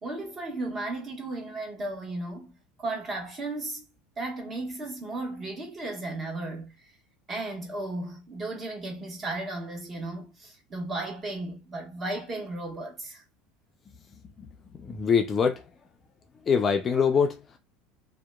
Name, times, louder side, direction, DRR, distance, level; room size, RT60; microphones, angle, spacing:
voice 1, 0.0-3.8 4.2-6.7 7.3-13.2, right 2 dB, 30° right, 1.2 m, -35 dB
voice 2, 14.4-15.7 16.4-17.6, left 6 dB, 30° left, 0.4 m, -25 dB
2.8 x 2.2 x 2.2 m
supercardioid pair, 105°, 0 cm